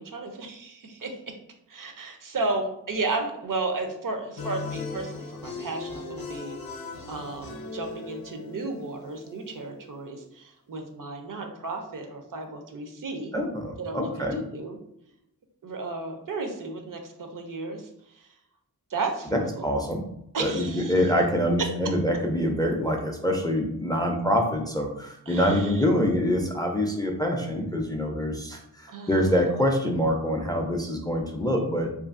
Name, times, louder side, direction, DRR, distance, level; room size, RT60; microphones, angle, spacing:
voice 1, 0.0-1.4 1.7-6.6 7.1-13.3 13.8-14.8 15.6-18.3 18.9-19.7 20.3-20.9 21.6-21.9 25.3-25.8 28.9-29.4, right 3 dB, 60° right, 4 dB, 0.5 m, -33 dB
sound 1, 4.4-9.6, left 4 dB, 70° left, 0.5 m, -38 dB
voice 2, 13.3-14.4 19.3-20.0 20.4-31.9, equal, 10° left, 2 dB, 0.4 m, -25 dB
2.5 x 2.5 x 2.4 m, 0.78 s
wide cardioid pair, 65°, 37 cm